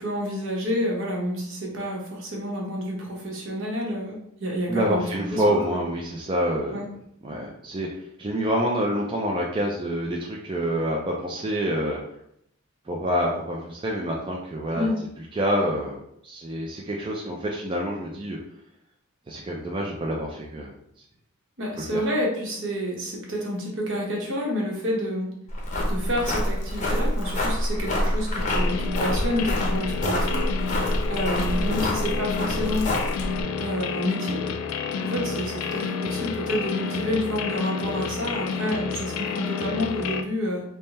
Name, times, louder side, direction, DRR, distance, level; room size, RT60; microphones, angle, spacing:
voice 1, 0.0-5.6 6.7-6.8 14.7-15.0 21.6-25.3 25.9-30.5 31.1-32.9 33.6-34.4 35.0-40.6, equal, 60° right, -2 dB, 1.1 m, -29 dB
voice 2, 4.7-6.8 7.2-7.9 8.2-12.0 12.9-14.9 15.3-16.0 16.2-18.4 19.3-20.7 21.8-22.0, equal, 25° right, -2 dB, 0.4 m, -27 dB
sound 1, 25.5-33.4, left 1 dB, 35° left, 0.7 m, -26 dB
sound 2, 28.4-40.2, left 5 dB, 75° left, 0.4 m, -30 dB
3.5 x 2.1 x 4.0 m, 0.73 s
head